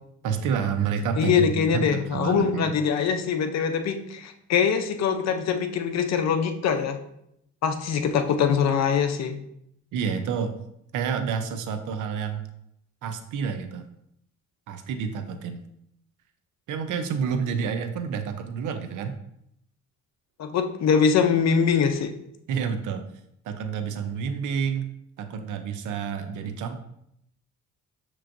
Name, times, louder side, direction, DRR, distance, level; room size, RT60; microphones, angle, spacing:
voice 1, 0.2-2.7 9.9-10.5 10.9-12.5 13.0-13.9 14.7-15.6 16.7-19.1 22.5-23.1 23.4-24.9 25.2-26.8, right 6 dB, 80° right, 8 dB, 0.6 m, -29 dB
voice 2, 1.2-7.0 7.6-9.4 20.4-22.1, left 6 dB, 60° left, 7 dB, 0.6 m, -23 dB
6.8 x 3.1 x 2.5 m, 0.75 s
cardioid pair, 90°, 30 cm